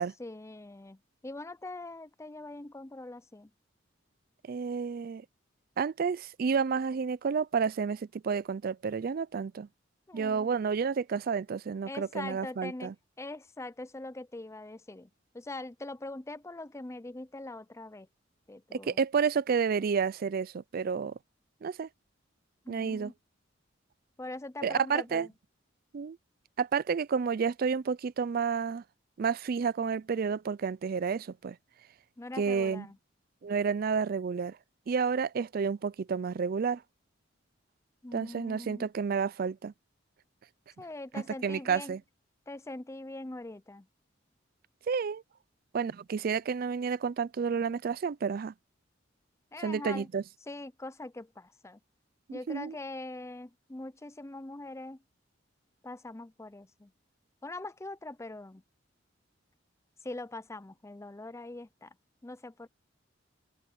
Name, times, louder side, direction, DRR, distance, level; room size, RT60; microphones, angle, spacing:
voice 1, 0.2-3.5 10.1-10.5 11.9-12.9 13.2-15.1 15.3-18.1 18.5-19.0 22.6-23.1 24.2-25.3 32.2-33.0 38.0-38.9 40.8-42.0 42.5-43.9 49.5-50.1 50.5-51.8 52.3-55.0 55.8-56.9 57.4-58.6 60.0-61.9 62.2-62.7, left 2 dB, 15° left, 0.5 m, -42 dB
voice 2, 4.5-5.2 5.8-9.7 10.1-12.9 18.7-21.2 21.6-21.9 22.7-23.1 24.6-25.3 25.9-26.2 26.6-28.8 29.2-31.6 32.4-32.9 33.4-34.6 34.9-36.8 38.1-39.7 41.1-42.0 44.9-45.2 45.7-48.5 49.6-50.2 52.3-52.8, right 6 dB, 50° right, 0.4 m, -30 dB
head